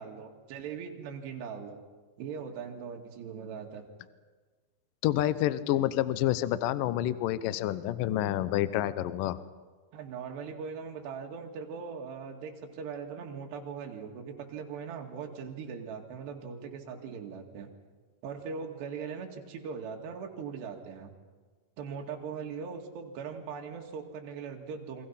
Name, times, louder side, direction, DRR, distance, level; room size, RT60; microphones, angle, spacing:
voice 1, 0.0-1.8 2.2-3.9 9.9-17.7 18.2-21.1 21.8-25.1, right 6 dB, 70° right, 2 dB, 4.2 m, -40 dB
voice 2, 5.0-9.4, left 13 dB, 90° left, 14 dB, 1.9 m, -28 dB
29.0 x 24.0 x 5.8 m, 1.4 s
omnidirectional pair, 5.2 m